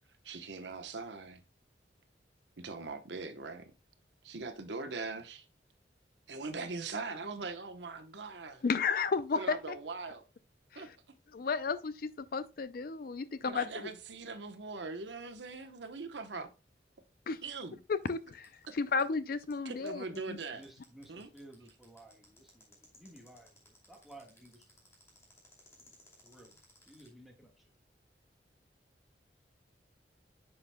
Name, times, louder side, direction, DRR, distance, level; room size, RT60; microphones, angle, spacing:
voice 1, 0.2-1.4 2.6-3.7 4.2-5.4 6.3-8.6 9.3-10.2 10.8-10.9 13.4-16.5 17.4-17.8 18.7-18.8 19.6-20.6 21.1-21.3, right 3 dB, 85° right, 1.0 m, -41 dB
voice 2, 8.6-9.8 10.7-10.9 11.3-13.8 17.3-17.4 17.9-20.4, left 5 dB, 55° left, 0.4 m, -33 dB
sound 1, 18.0-27.1, left 2 dB, 15° left, 2.6 m, -61 dB
voice 3, 20.5-24.7 26.2-26.6 26.8-27.7, right 1 dB, ahead, 1.5 m, -55 dB
9.7 x 5.8 x 2.2 m
head